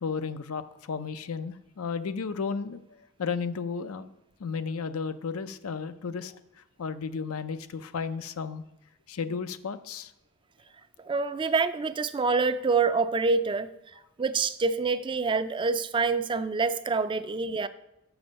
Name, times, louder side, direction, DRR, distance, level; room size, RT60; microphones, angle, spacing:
voice 1, 0.0-2.8 3.2-4.1 4.4-6.3 6.8-8.6 9.1-10.1, left 5 dB, 85° left, 12 dB, 0.5 m, -33 dB
voice 2, 11.1-13.7 14.2-17.7, right 4 dB, 25° right, 12 dB, 0.3 m, -26 dB
7.0 x 6.1 x 6.5 m, 0.88 s
head